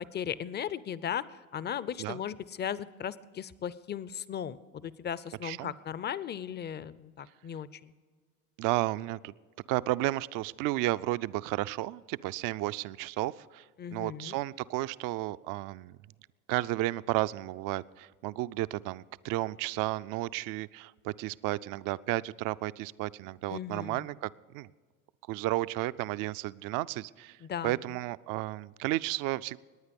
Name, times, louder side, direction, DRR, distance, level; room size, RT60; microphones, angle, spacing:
voice 1, 0.1-1.2 1.5-7.9 13.8-14.4 23.5-24.1 27.4-27.8, left 9 dB, 25° left, 18 dB, 0.5 m, -37 dB
voice 2, 5.4-5.7 8.6-9.3 9.7-13.6 13.9-16.0 16.5-24.7 25.3-27.4 27.6-29.6, right 17 dB, 50° right, 17 dB, 0.5 m, -33 dB
19.0 x 9.6 x 5.3 m, 1.5 s
hypercardioid pair, 75°, 42 cm